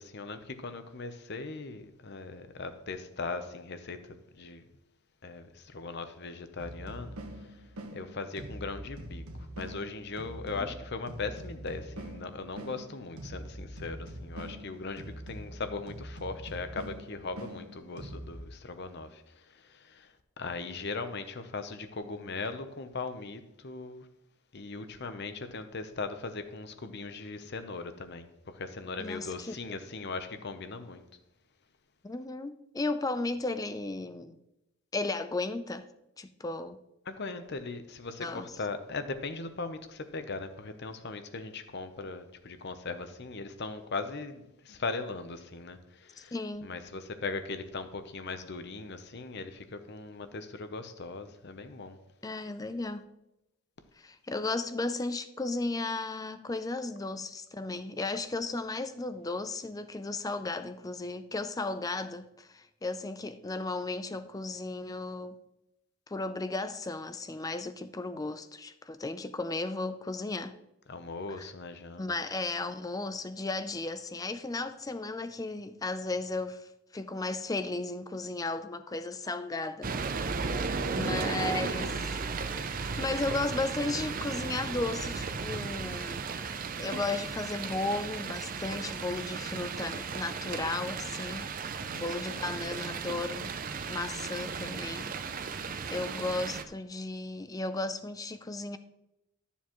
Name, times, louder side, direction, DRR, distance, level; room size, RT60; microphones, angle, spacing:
voice 1, 0.0-4.6 5.2-7.5 7.9-24.1 24.5-31.0 37.1-46.3 46.6-52.0 70.9-72.1 80.4-80.8 91.8-92.1, left 3 dB, 50° left, 0.7 m, -39 dB
sound 1, 6.6-18.5, right 1 dB, 80° right, 1.3 m, -44 dB
voice 2, 29.0-29.5 32.0-34.4 34.9-35.9 36.2-36.8 38.2-38.6 46.3-46.7 52.2-53.1 54.0-65.4 66.1-70.6 71.4-71.5 72.0-80.0 80.9-82.0 82.5-86.3 86.8-91.5 92.0-93.6 93.9-95.1 95.9-98.8, left 2 dB, 15° left, 0.4 m, -35 dB
sound 2, 79.8-96.6, right 5 dB, 40° right, 0.5 m, -35 dB
13.0 x 7.0 x 3.0 m
head